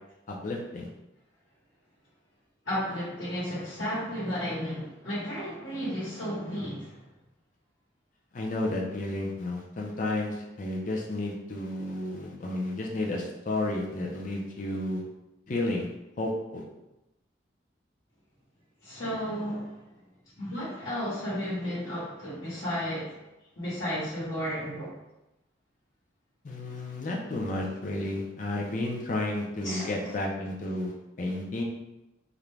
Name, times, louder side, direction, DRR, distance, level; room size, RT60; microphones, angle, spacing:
voice 1, 0.3-0.9 8.3-15.0 15.5-15.9 16.2-16.6 26.4-30.9 31.2-31.6, left 2 dB, 40° left, -1 dB, 0.4 m, -32 dB
voice 2, 2.6-7.0 18.8-19.8 20.4-23.2 23.6-24.9 29.6-30.1, equal, 80° left, -9 dB, 1.1 m, -33 dB
2.5 x 2.1 x 3.1 m, 0.94 s
head